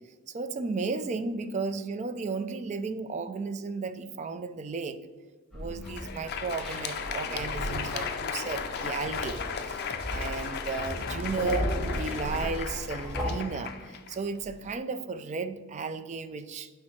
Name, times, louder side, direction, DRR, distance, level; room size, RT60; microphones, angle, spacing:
voice 1, 0.3-5.0 5.5-9.8 10.1-16.7, right 4 dB, 30° right, 11 dB, 0.3 m, -34 dB
sound 1, 5.5-13.3, equal, ahead, 1.6 m, -36 dB
Crowd, 5.7-14.7, left 6 dB, 45° left, 0.4 m, -36 dB
sound 2, 8.9-12.5, equal, 80° right, 1.6 m, -41 dB
7.4 x 4.7 x 3.1 m, 1.4 s
head